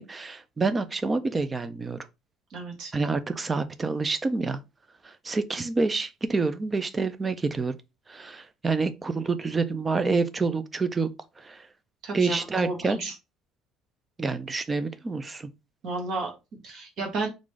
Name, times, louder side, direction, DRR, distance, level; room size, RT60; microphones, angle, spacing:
voice 1, 0.0-2.0 2.9-4.6 5.0-7.8 8.1-11.1 11.4-11.7 12.1-13.0 14.2-15.5, right 4 dB, 15° right, 0.3 m, -27 dB
voice 2, 2.5-2.9 12.0-13.1 15.8-17.3, right 3 dB, 40° right, 1.2 m, -33 dB
3.7 x 2.5 x 3.1 m
cardioid pair, 180°, 0 cm